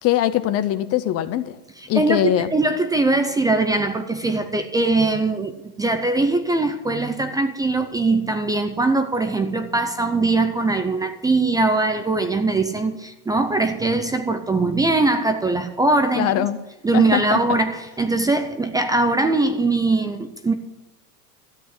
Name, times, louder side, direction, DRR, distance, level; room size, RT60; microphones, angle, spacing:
voice 1, 0.0-1.6 1.9-2.5 16.2-16.6 16.9-17.6, left 13 dB, 30° left, 13 dB, 0.6 m, -22 dB
voice 2, 1.8-16.5 16.8-20.5, right 2 dB, 10° right, 8 dB, 0.6 m, -21 dB
13.5 x 8.0 x 9.6 m, 1.0 s
supercardioid pair, 140°, 47 cm